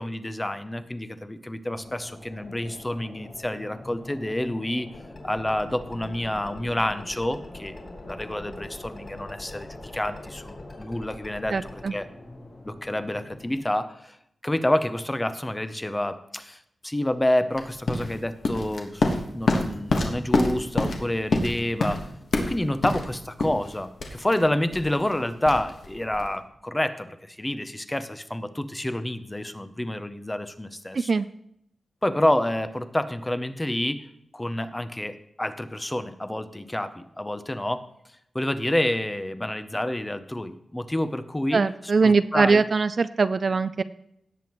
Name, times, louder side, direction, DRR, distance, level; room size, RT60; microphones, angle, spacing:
voice 1, 0.0-4.9 5.2-7.7 8.0-12.1 12.6-14.2 14.4-22.1 22.4-31.1 32.0-34.1 34.3-37.8 38.3-41.6 42.0-42.6, left 1 dB, 10° left, 11 dB, 0.6 m, -28 dB
sound 1, 1.7-13.6, left 2 dB, 50° left, 2.0 m, -44 dB
sound 2, 4.9-11.8, left 1 dB, 30° left, 3.0 m, -44 dB
voice 2, 11.5-11.9 30.9-31.3 41.5-43.8, right 4 dB, 50° right, 13 dB, 0.3 m, -22 dB
sound 3, 17.5-26.4, left 2 dB, 65° left, 1.4 m, -27 dB
17.5 x 7.7 x 3.0 m, 0.75 s
wide cardioid pair, 150°, 0 cm